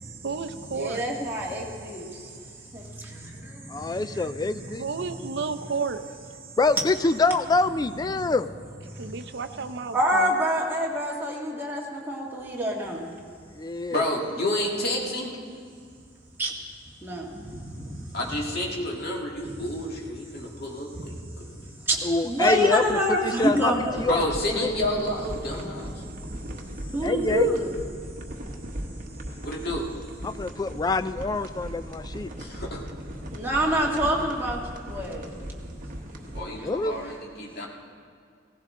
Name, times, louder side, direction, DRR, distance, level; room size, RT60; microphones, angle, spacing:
voice 1, 0.2-1.0 4.8-6.0 9.0-10.3, right 5 dB, 60° right, 10 dB, 0.6 m, -31 dB
voice 2, 0.8-2.0 9.9-11.8 12.1-13.0 16.4-16.5 17.0-17.2 22.2-24.1 26.9-27.7 33.4-34.6 34.9-35.2, equal, 10° right, -4 dB, 1.9 m, -25 dB
voice 3, 3.7-4.8 6.6-8.5 13.6-14.0 22.0-23.0 23.2-23.7 24.0-24.2 24.6-24.7 27.0-27.5 30.2-32.3 36.5-36.9, left 3 dB, 20° left, 12 dB, 0.3 m, -25 dB
voice 4, 13.9-15.3 18.1-21.5 24.1-26.0 29.4-29.9 32.4-32.8 36.3-37.7, left 1 dB, 55° left, -2 dB, 2.0 m, -30 dB
sound 1, 23.9-36.4, equal, 45° right, 1.2 m, -38 dB
17.0 x 15.5 x 3.7 m, 2.2 s
head